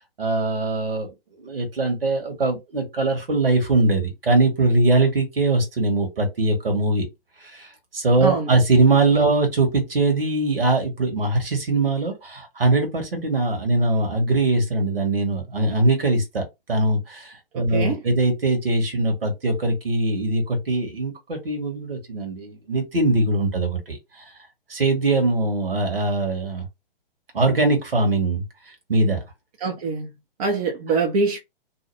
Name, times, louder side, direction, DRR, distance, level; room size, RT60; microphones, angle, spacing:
voice 1, 0.2-7.1 7.4-24.2 24.7-26.6 27.3-29.2, right 2 dB, 70° right, 1.5 m, -22 dB
voice 2, 17.5-18.0 29.6-30.1 30.4-31.4, right 4 dB, 40° right, 0.8 m, -24 dB
2.8 x 2.2 x 3.3 m
figure-of-eight pair, 120°, 29 cm